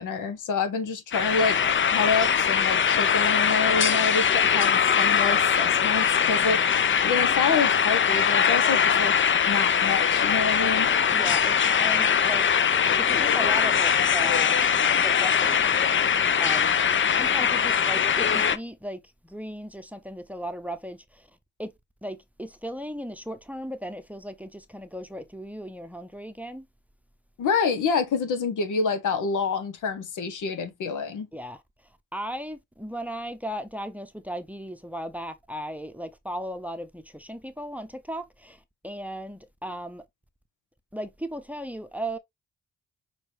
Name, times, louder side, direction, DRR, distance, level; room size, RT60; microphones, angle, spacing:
voice 1, 0.0-1.6 1.8-6.6 7.0-9.1 9.5-10.9 27.4-31.3, left 5 dB, 75° left, 1.0 m, -27 dB
sound 1, 1.1-18.6, left 7 dB, 40° left, 0.6 m, -22 dB
voice 2, 11.1-12.5 13.0-14.6 15.0-15.8 16.4-16.7 17.1-21.3 21.6-21.7 22.0-26.7 31.3-31.6 32.1-40.0 40.9-42.2, equal, 5° right, 0.7 m, -36 dB
6.1 x 2.4 x 3.3 m
hypercardioid pair, 40°, 31 cm